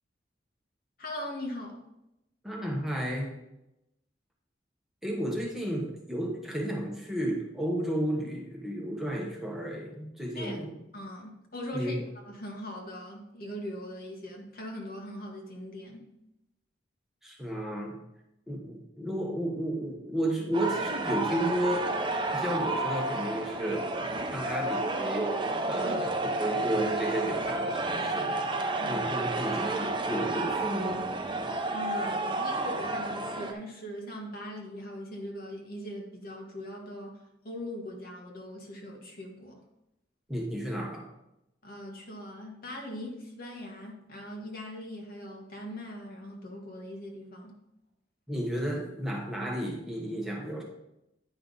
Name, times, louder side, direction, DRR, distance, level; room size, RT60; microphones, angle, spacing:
voice 1, 1.0-1.8 10.3-10.6 10.9-16.1 25.8-26.1 28.1-28.2 28.8-29.1 31.7-39.6 41.6-47.6, left 1 dB, 55° left, 1 dB, 1.6 m, -40 dB
voice 2, 2.4-3.4 5.0-10.7 11.7-12.0 17.2-18.0 18.5-24.0 24.3-31.1 40.3-41.1 48.3-50.6, right 1 dB, ahead, -2 dB, 1.2 m, -33 dB
sound 1, 20.5-33.5, right 2 dB, 25° right, 0.7 m, -31 dB
9.7 x 5.5 x 4.0 m, 0.86 s
head